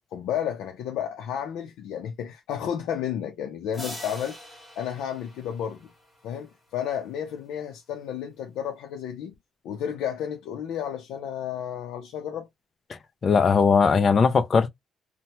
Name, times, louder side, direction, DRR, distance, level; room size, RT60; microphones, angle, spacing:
voice 1, 0.1-4.4 4.8-5.9 6.2-9.3 9.6-12.5, left 9 dB, 85° left, 0.5 m, -32 dB
sound 1, 3.7-6.5, left 1 dB, 5° left, 1.3 m, -43 dB
voice 2, 13.2-14.7, left 5 dB, 30° left, 0.4 m, -19 dB
2.8 x 2.1 x 2.9 m
cardioid pair, 165°, 0 cm